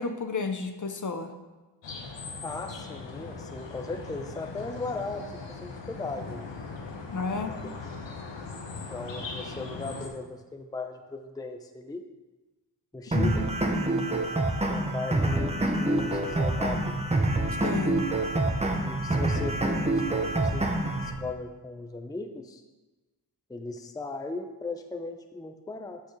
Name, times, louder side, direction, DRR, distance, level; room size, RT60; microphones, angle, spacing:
voice 1, 0.0-1.3 7.1-7.6 13.1-13.4 17.6-18.0, left 4 dB, 45° left, 6 dB, 0.7 m, -31 dB
sound 1, 1.8-10.1, left 4 dB, 80° left, 0.9 m, -40 dB
voice 2, 2.4-6.5 7.5-7.6 8.8-12.0 12.9-13.4 14.7-17.0 18.7-22.6 23.5-26.0, left 3 dB, 10° left, 6 dB, 0.5 m, -37 dB
sound 2, 13.1-21.1, right 1 dB, 15° right, 0.9 m, -26 dB
sound 3, 15.9-21.3, right 6 dB, 65° right, 0.6 m, -41 dB
8.2 x 6.3 x 3.3 m, 1.2 s
cardioid pair, 55°, 44 cm